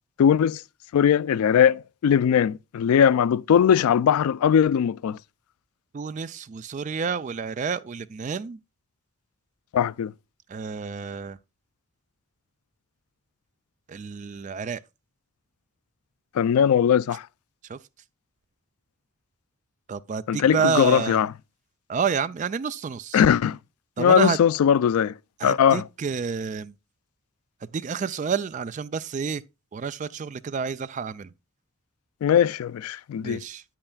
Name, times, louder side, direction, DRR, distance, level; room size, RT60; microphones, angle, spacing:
voice 1, 0.2-0.6 0.9-5.2 9.7-10.1 16.3-17.3 20.3-21.3 23.1-23.6 24.0-25.2 25.4-25.8 32.2-33.4, left 8 dB, 90° left, 0.3 m, -20 dB
voice 2, 5.9-8.6 10.5-11.4 13.9-14.8 17.7-17.8 19.9-21.2 21.9-23.2 24.0-24.4 25.4-26.7 27.7-29.4 29.7-31.3 33.2-33.6, right 6 dB, 35° right, 0.3 m, -29 dB
8.9 x 8.7 x 2.3 m
head